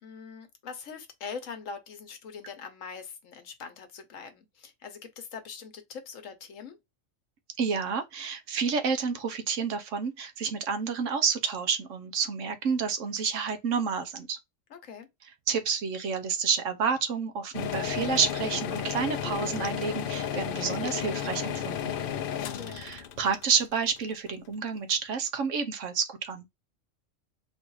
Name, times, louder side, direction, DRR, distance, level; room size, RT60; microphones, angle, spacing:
voice 1, 0.0-6.8 14.7-15.1 22.3-22.9, left 6 dB, 75° left, 1.3 m, -42 dB
voice 2, 7.6-14.4 15.5-22.0 22.7-26.4, right 6 dB, 70° right, 1.1 m, -29 dB
sound 1, 17.5-24.5, left 9 dB, 60° left, 0.6 m, -33 dB
3.9 x 2.5 x 4.6 m
omnidirectional pair, 1.4 m